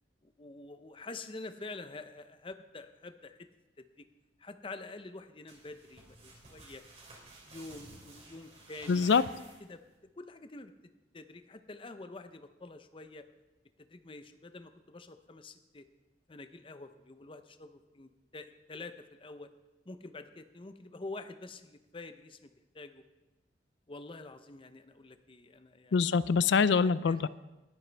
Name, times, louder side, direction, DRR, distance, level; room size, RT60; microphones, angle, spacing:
voice 1, 0.2-3.5 4.0-4.1 4.4-6.8 7.4-9.1 9.7-9.8 10.2-10.7 11.1-13.3 13.8-15.9 16.3-19.5 19.9-23.0 23.9-26.2 26.8-27.2, left 3 dB, 30° left, 9 dB, 0.6 m, -47 dB
sound 1, 5.5-10.0, right 2 dB, 35° right, 3.0 m, -53 dB
voice 2, 8.9-9.2 25.9-27.3, left 5 dB, 70° left, 17 dB, 0.4 m, -25 dB
19.0 x 9.1 x 3.4 m, 1.1 s
head